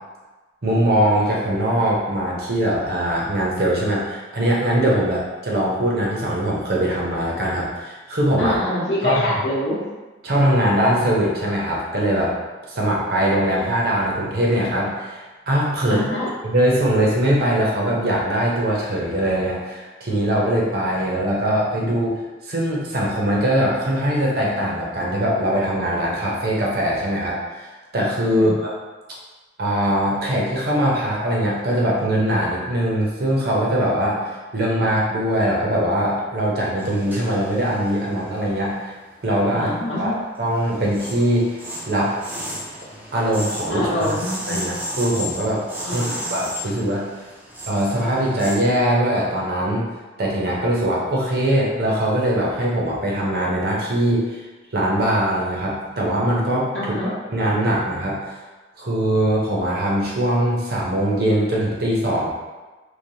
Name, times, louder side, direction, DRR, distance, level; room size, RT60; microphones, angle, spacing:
voice 1, 0.6-8.5 9.0-9.2 10.2-12.3 12.7-16.0 16.4-22.2 22.5-28.7 29.6-34.2 34.5-38.9 39.2-39.7 40.0-41.6 41.9-42.1 43.1-44.1 44.5-47.1 47.7-49.8 50.2-54.4 54.7-58.4 58.8-62.3, right 1 dB, 55° right, -4 dB, 0.6 m, -21 dB
voice 2, 8.4-9.8 15.9-16.3 28.3-28.6 39.5-40.1 43.7-44.7 45.8-46.3 56.7-57.1, left 1 dB, 75° left, -5 dB, 0.7 m, -25 dB
sound 1, 36.8-39.2 39.6-48.6, equal, 10° right, 0.4 m, -34 dB
3.1 x 2.0 x 2.6 m, 1.2 s
head